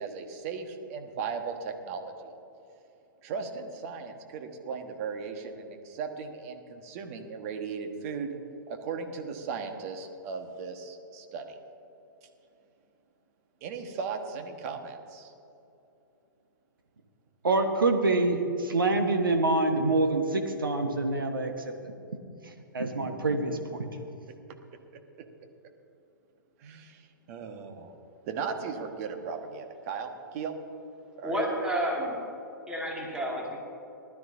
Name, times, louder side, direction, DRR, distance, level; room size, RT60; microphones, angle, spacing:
voice 1, 0.0-2.3 3.2-8.4 8.7-11.6 13.6-15.3 26.6-27.9 28.2-30.6 31.2-31.3, right 5 dB, 45° right, 5 dB, 1.4 m, -37 dB
voice 2, 17.4-21.7 22.7-23.9, right 2 dB, 80° right, 4 dB, 1.3 m, -26 dB
voice 3, 31.2-32.2 32.7-33.6, equal, 5° right, -3 dB, 2.2 m, -30 dB
19.5 x 12.5 x 2.7 m, 2.8 s
figure-of-eight pair, 115°, 11 cm